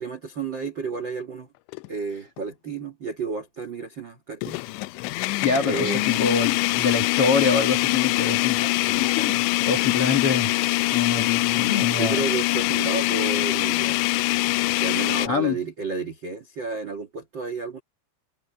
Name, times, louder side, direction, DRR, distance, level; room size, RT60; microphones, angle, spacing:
voice 1, 0.0-1.5 1.9-4.6 5.6-6.0 11.9-14.2 14.8-17.8, right 4 dB, 60° right, 1.1 m, -31 dB
sound 1, 1.7-1.9 2.4-2.5 4.4-15.3, left 21 dB, 85° left, 2.9 m, -24 dB
voice 2, 5.4-10.5 10.9-12.2 15.2-15.6, left 5 dB, 55° left, 1.6 m, -25 dB
omnidirectional pair, 5.1 m